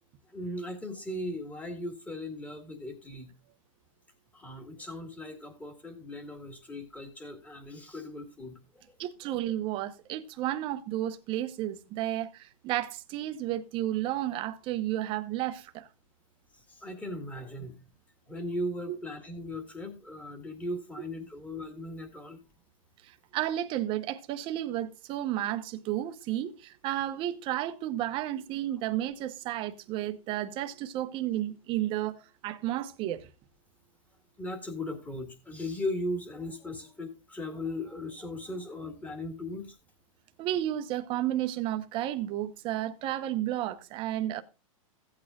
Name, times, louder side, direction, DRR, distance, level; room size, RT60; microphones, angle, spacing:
voice 1, 0.3-3.3 4.3-9.0 9.3-9.4 16.7-17.8 18.3-22.4 34.4-39.8, left 1 dB, 10° left, 2.0 m, -38 dB
voice 2, 9.0-15.9 18.9-19.0 21.0-21.1 23.0-33.3 40.4-44.4, right 13 dB, 30° right, 0.9 m, -32 dB
16.0 x 8.6 x 2.4 m
hypercardioid pair, 150°, 18 cm